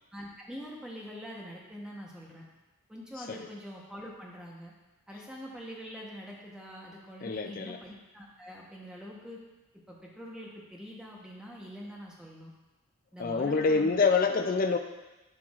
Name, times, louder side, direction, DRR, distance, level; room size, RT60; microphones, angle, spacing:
voice 1, 0.1-2.5 2.9-4.7 5.1-9.4 9.9-12.5 13.1-14.0, equal, 5° right, -3 dB, 0.9 m, -44 dB
voice 2, 7.2-7.8 13.2-14.8, left 4 dB, 40° left, 6 dB, 0.3 m, -26 dB
11.5 x 4.6 x 2.4 m, 1.1 s
head